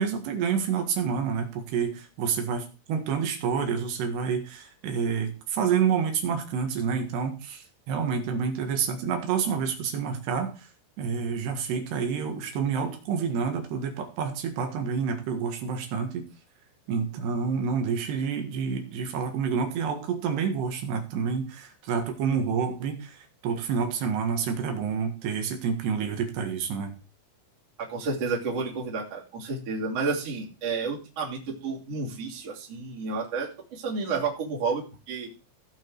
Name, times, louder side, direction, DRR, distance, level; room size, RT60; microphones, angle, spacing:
voice 1, 0.0-10.7 11.0-16.3 16.9-26.9, right 6 dB, 65° right, 4 dB, 3.3 m, -28 dB
voice 2, 27.8-35.3, right 4 dB, 35° right, -3 dB, 3.3 m, -31 dB
17.0 x 5.8 x 4.7 m, 0.32 s
omnidirectional pair, 5.9 m